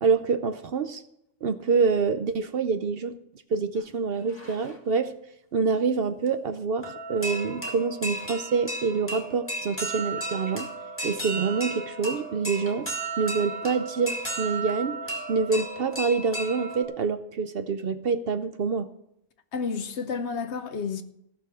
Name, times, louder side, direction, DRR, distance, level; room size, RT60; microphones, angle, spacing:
voice 1, 0.0-1.0 1.4-3.2 3.5-5.1 5.5-10.7 11.0-12.9 13.2-15.0 15.3-18.9, right 5 dB, 55° right, 0.8 m, -26 dB
sound 1, 3.8-3.9 4.2-4.9 6.3-6.4 6.8-16.8, right 2 dB, 10° left, 2.0 m, -34 dB
voice 2, 19.5-21.0, left 5 dB, 65° left, 1.1 m, -30 dB
15.0 x 6.8 x 6.1 m
omnidirectional pair, 1.3 m